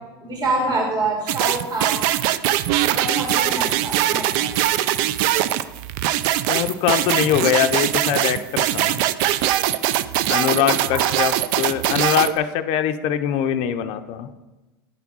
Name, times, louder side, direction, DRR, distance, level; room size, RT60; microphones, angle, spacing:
voice 1, 0.2-2.1 2.9-4.4 10.9-11.4, right 2 dB, 35° right, -2 dB, 2.3 m, -26 dB
sound 1, 1.3-12.3, right 13 dB, 60° right, 0.4 m, -21 dB
voice 2, 6.5-8.9 10.3-14.3, left 10 dB, 50° left, 9 dB, 0.5 m, -22 dB
9.3 x 3.5 x 6.1 m, 1.1 s
hypercardioid pair, 95°, 12 cm